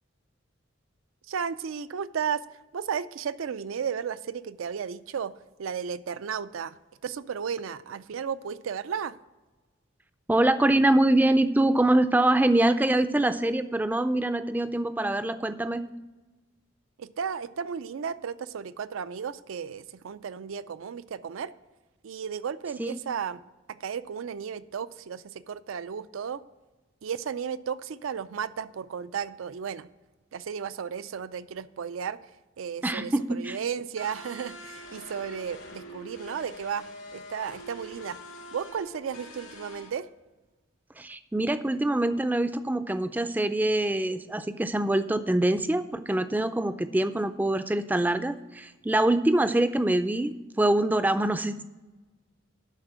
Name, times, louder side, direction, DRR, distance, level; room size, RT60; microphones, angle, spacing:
voice 1, 1.3-2.5 2.7-5.3 5.6-6.8 7.0-9.2 17.0-21.5 22.0-23.4 23.7-26.4 27.0-29.9 30.3-32.2 32.6-36.9 37.1-38.2 38.5-40.1, right 7 dB, 80° right, 15 dB, 0.4 m, -34 dB
voice 2, 10.3-15.8 22.8-23.0 32.8-33.6 41.0-51.6, right 1 dB, 10° right, 11 dB, 0.3 m, -24 dB
sound 1, 34.0-39.9, equal, 80° left, 2.8 m, -44 dB
11.5 x 4.4 x 7.4 m, 1.2 s
head